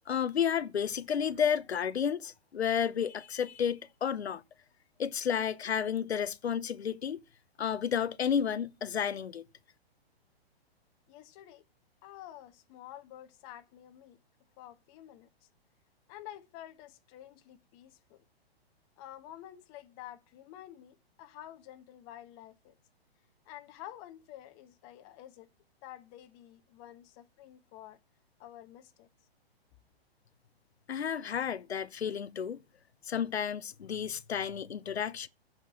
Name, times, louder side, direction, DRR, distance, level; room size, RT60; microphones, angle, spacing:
voice 1, 0.1-4.4 5.0-7.2 7.6-9.4 30.9-32.6 33.1-35.3, left 8 dB, 90° left, 0.8 m, -31 dB
voice 2, 11.1-11.6 12.0-14.2 14.6-15.3 16.1-18.2 19.0-22.8 23.4-25.5 25.8-28.0 28.4-29.1, left 12 dB, 30° left, 1.3 m, -50 dB
8.6 x 6.2 x 7.3 m
hypercardioid pair, 135°, 31 cm